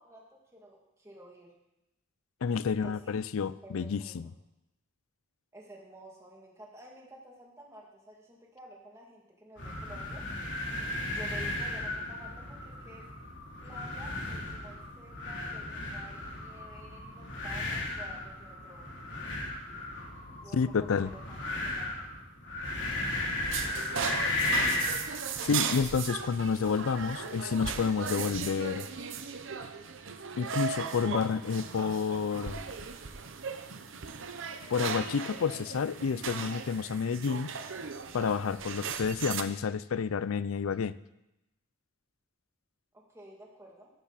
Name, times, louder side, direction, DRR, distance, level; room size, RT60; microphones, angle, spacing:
voice 1, 0.0-1.5 2.7-3.2 3.6-4.2 5.5-10.2 11.1-13.1 13.6-18.9 20.4-22.1 42.9-43.9, right 1 dB, 15° right, -2 dB, 2.3 m, -51 dB
voice 2, 2.4-4.3 20.5-21.1 25.4-28.9 30.4-32.6 34.7-37.5 38.1-40.9, left 6 dB, 80° left, 17 dB, 0.5 m, -30 dB
sound 1, 9.6-25.1, left 2 dB, 60° left, 3.1 m, -35 dB
sound 2, 23.4-39.4, right 6 dB, 65° right, 0.8 m, -37 dB
12.0 x 12.0 x 4.2 m, 0.91 s
head